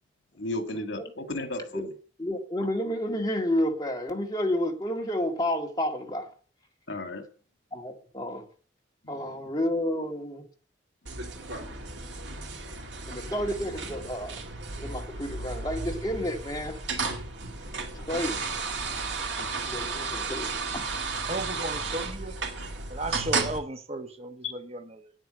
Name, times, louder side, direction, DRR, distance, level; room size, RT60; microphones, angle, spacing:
voice 1, 0.4-1.9 6.9-7.2 9.0-9.4 24.4-24.5, left 2 dB, 75° left, 2.3 m, -34 dB
voice 2, 2.2-6.3 7.7-8.4 9.1-10.5 13.1-14.4 14.8-16.8 17.9-18.4 19.7-20.9, left 1 dB, 20° left, 2.1 m, -30 dB
sound 1, 11.1-23.6, right 4 dB, 65° right, 2.3 m, -34 dB
voice 3, 21.3-22.4 22.9-25.1, right 2 dB, 30° right, 1.1 m, -35 dB
9.5 x 9.1 x 7.7 m
head